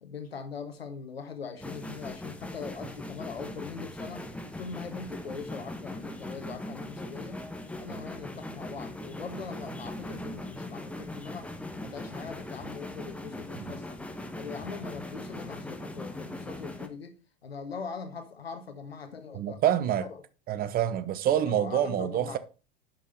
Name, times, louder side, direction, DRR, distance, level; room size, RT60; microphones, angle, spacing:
voice 1, 0.0-4.2 4.6-7.4 7.8-11.5 11.8-14.0 14.4-17.1 17.4-19.6 20.0-20.2 21.3-22.4, left 5 dB, 75° left, 1.4 m, -41 dB
sound 1, 1.6-16.9, left 1 dB, 5° left, 1.3 m, -40 dB
voice 2, 19.3-20.1 20.5-22.4, right 10 dB, 30° right, 0.9 m, -27 dB
11.0 x 6.2 x 4.1 m
figure-of-eight pair, 85°, 31 cm